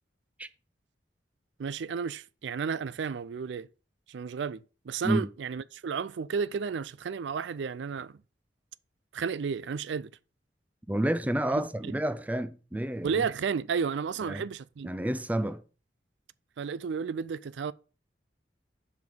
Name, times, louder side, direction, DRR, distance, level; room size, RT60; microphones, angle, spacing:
voice 1, 1.6-3.7 4.1-8.1 9.1-10.1 11.5-11.9 13.0-14.9 16.6-17.7, right 6 dB, 75° right, 0.4 m, -32 dB
voice 2, 10.9-13.2 14.3-14.5 14.8-15.6, right 1 dB, 10° right, 0.5 m, -29 dB
6.4 x 5.2 x 6.9 m
head